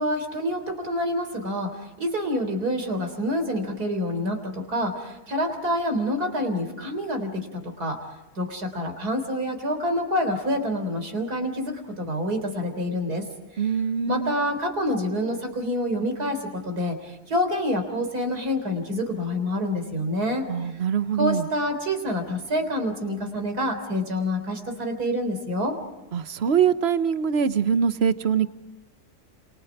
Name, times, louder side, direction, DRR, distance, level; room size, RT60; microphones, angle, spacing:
voice 1, 0.0-1.7 2.0-8.0 8.4-13.3 14.1-20.5 21.2-25.7, equal, 70° right, 6 dB, 4.3 m, -27 dB
voice 2, 13.6-14.3 20.5-21.5 26.1-28.5, right 7 dB, 45° right, 12 dB, 1.1 m, -23 dB
29.0 x 28.0 x 4.9 m, 1.0 s
omnidirectional pair, 1.7 m